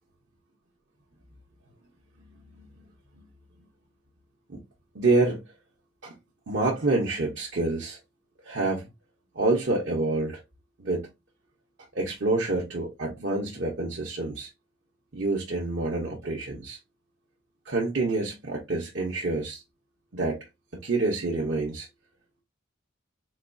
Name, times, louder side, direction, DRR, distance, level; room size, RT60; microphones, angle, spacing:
voice 1, 4.9-5.4 6.0-6.1 6.5-8.0 8.4-8.9 9.3-10.4 10.8-11.1 11.9-14.5 15.1-16.8 17.7-19.6 20.1-20.4 20.7-21.9, right 2 dB, 60° right, 0.8 m, -27 dB
4.0 x 2.3 x 2.5 m
head